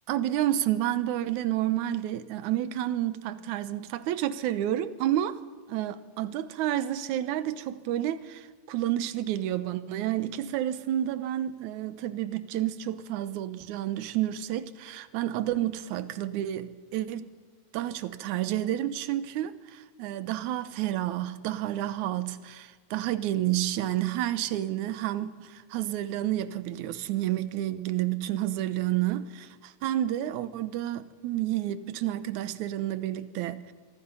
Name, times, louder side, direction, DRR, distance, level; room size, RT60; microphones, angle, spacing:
voice 1, 0.1-5.4 5.7-17.3 17.7-33.7, right 13 dB, 80° right, 2.3 m, -30 dB
25.5 x 24.5 x 5.5 m
omnidirectional pair, 3.5 m